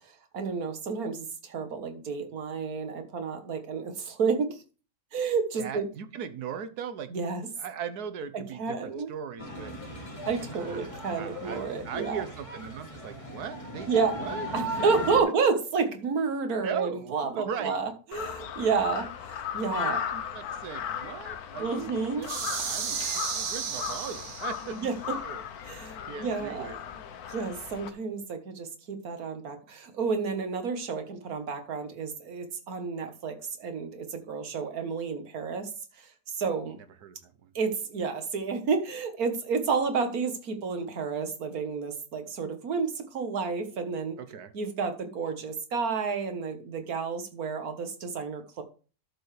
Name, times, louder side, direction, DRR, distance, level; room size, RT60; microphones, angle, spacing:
voice 1, 0.3-4.6 5.1-5.9 7.1-7.5 8.3-9.1 10.2-12.2 13.9-14.1 14.5-20.0 21.6-22.2 24.7-24.9 25.7-25.9 26.2-26.8 27.3-35.7 36.0-36.8 37.5-44.2 44.5-48.6, right 5 dB, 70° right, 7 dB, 1.8 m, -30 dB
voice 2, 5.6-7.1 7.6-9.7 10.5-14.5 14.7-14.8 16.6-17.8 19.9-25.4 25.9-26.8 36.7-37.5 44.2-44.5, right 7 dB, 85° right, 11 dB, 1.5 m, -39 dB
sound 1, 9.4-15.2, equal, 20° left, 2.1 m, -37 dB
Crow, 18.1-27.9, left 8 dB, 75° left, 1.4 m, -37 dB
sound 2, 22.2-24.8, right 6 dB, 55° right, 1.2 m, -33 dB
12.0 x 7.0 x 3.3 m, 0.36 s
omnidirectional pair, 1.6 m